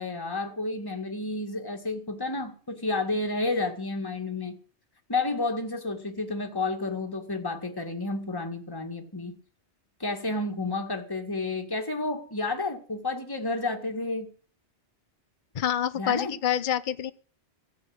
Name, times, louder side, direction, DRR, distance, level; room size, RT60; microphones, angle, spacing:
voice 1, 0.0-4.6 5.1-9.4 10.0-14.3 16.0-16.3, left 2 dB, 20° left, 2.1 m, -31 dB
voice 2, 15.5-17.1, left 10 dB, 50° left, 0.9 m, -27 dB
15.5 x 7.6 x 8.8 m
omnidirectional pair, 1.2 m